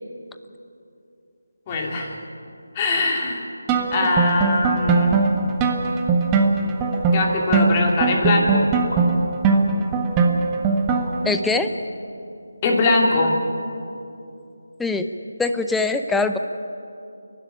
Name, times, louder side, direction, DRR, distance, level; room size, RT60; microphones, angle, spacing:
voice 1, 1.7-2.2 2.7-3.5 3.9-5.2 7.1-8.7 12.6-13.4, left 2 dB, 25° left, 0 dB, 2.8 m, -21 dB
sound 1, 3.7-11.3, right 4 dB, 15° right, 1.3 m, -20 dB
sound 2, 4.9-5.2 6.9-7.3 8.9-9.1 10.9-11.2, left 1 dB, 85° left, 7.7 m, -35 dB
voice 2, 11.2-11.7 14.8-15.1 15.4-16.4, left 3 dB, 5° left, 7 dB, 0.7 m, -22 dB
29.5 x 12.0 x 9.9 m, 2.7 s
figure-of-eight pair, 160°, 0 cm